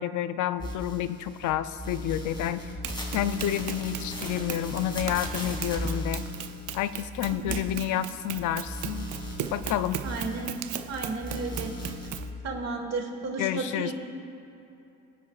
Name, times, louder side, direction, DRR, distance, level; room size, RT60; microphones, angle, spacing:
voice 1, 0.0-2.7 3.1-6.2 6.7-9.1 9.5-10.0 13.4-13.9, left 11 dB, 80° left, 12 dB, 0.5 m, -29 dB
sound 1, 0.6-1.5 1.8-8.4 8.6-10.9 11.2-12.2, equal, 15° left, 2.6 m, -37 dB
Run, 2.8-12.3, right 11 dB, 75° right, 0.6 m, -38 dB
voice 2, 7.2-7.7 10.0-10.6 10.9-11.7 12.4-13.9, right 3 dB, 60° right, 1 dB, 2.2 m, -33 dB
23.0 x 9.6 x 2.4 m, 2.8 s
cardioid pair, 90°, 30 cm